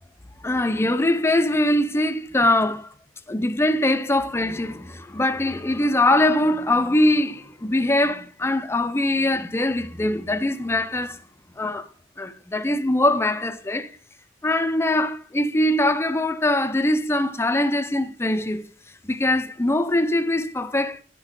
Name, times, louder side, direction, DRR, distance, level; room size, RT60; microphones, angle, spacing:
voice 1, 0.4-2.9 3.3-11.2 11.6-11.9 12.2-13.9 14.4-18.7 19.0-21.0, left 1 dB, 15° left, 0.5 m, -22 dB
10.5 x 6.2 x 3.7 m
head